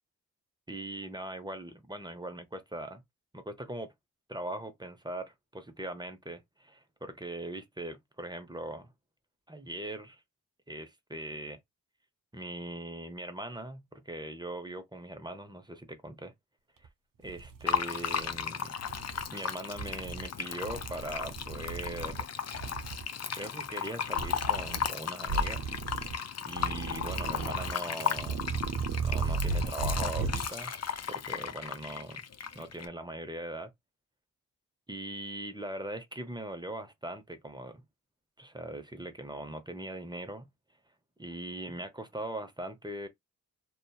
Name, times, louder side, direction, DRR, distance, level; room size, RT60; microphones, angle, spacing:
voice 1, 0.7-3.0 3.3-3.9 4.3-8.9 9.5-10.2 10.7-11.6 12.3-16.3 16.8-16.9 17.2-18.8 19.3-22.3 23.3-25.7 26.4-28.4 29.0-30.7 31.1-32.2 32.5-33.7 34.9-37.8 38.4-40.5 41.2-43.1, right 1 dB, 10° right, 0.7 m, -40 dB
sound 1, 16.8-16.9 17.3-18.4 18.8-19.2 19.7-20.3 20.6-22.2 22.5-23.0 24.1-24.9 25.2-26.2 26.5-27.7 28.1-30.5, right 5 dB, 65° right, 0.7 m, -35 dB
Fill (with liquid), 17.7-32.9, left 7 dB, 45° left, 0.6 m, -35 dB
2.7 x 2.3 x 2.3 m
cardioid pair, 40°, 35 cm